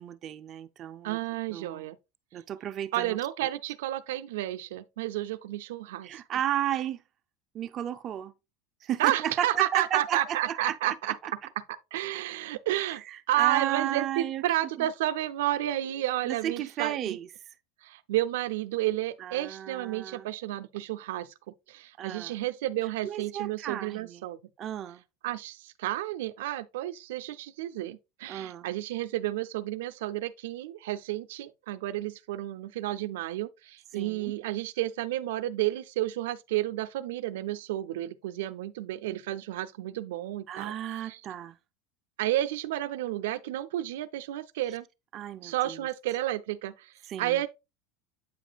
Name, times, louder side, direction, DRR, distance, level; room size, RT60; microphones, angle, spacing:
voice 1, 0.0-1.2 1.5-1.9 2.3-3.2 6.0-7.0 7.5-8.3 8.8-11.3 12.7-14.4 14.8-14.9 16.2-17.3 19.2-20.3 22.0-22.4 23.0-24.2 24.6-25.0 28.3-28.7 33.9-34.3 40.5-41.6 45.1-45.9 47.1-47.4, right 11 dB, 30° right, 0.4 m, -34 dB
voice 2, 1.0-2.0 2.9-6.2 9.0-11.1 11.9-13.0 13.3-17.2 17.8-21.3 21.7-24.4 25.2-40.7 41.0-41.2 42.2-44.8 45.4-46.9 47.2-47.5, right 14 dB, 90° right, 0.5 m, -31 dB
8.2 x 5.0 x 2.3 m
supercardioid pair, 155°, 0 cm